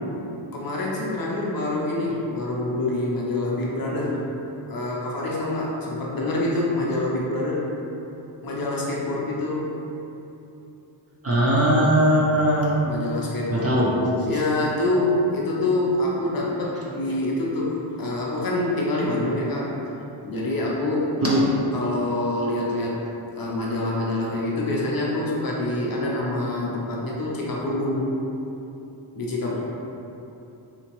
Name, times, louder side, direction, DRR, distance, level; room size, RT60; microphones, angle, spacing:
voice 1, 0.3-4.2 4.7-7.7 8.4-9.8 12.8-19.7 20.2-21.2 21.7-23.0 23.3-28.1 29.1-29.6, left 2 dB, 45° left, -4 dB, 0.6 m, -26 dB
voice 2, 11.2-12.9 13.5-13.9 21.2-21.5, right 1 dB, 35° right, -6 dB, 0.4 m, -19 dB
3.5 x 2.8 x 2.9 m, 2.9 s
wide cardioid pair, 140°, 48 cm